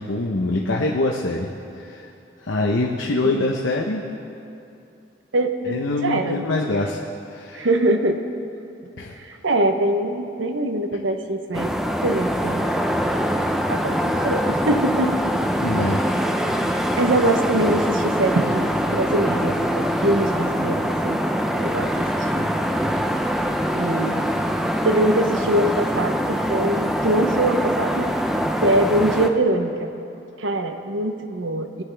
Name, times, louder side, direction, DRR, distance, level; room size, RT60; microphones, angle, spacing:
voice 1, 0.0-1.5 1.8-2.1 2.4-4.0 5.7-7.0 7.3-7.7 9.0-9.1 15.6-16.0, left 2 dB, 85° left, 0 dB, 0.8 m, -24 dB
voice 2, 5.3-6.4 7.5-8.2 9.4-11.7 12.0-12.7 13.7-15.2 16.3-16.4 16.7-21.2 21.6-22.5 23.7-24.2 24.8-28.2 28.6-29.9 30.4-31.8, right 1 dB, 85° right, 7 dB, 0.8 m, -23 dB
sound 1, 11.5-29.3, equal, ahead, 0.4 m, -23 dB
19.5 x 9.8 x 3.4 m, 2.7 s
head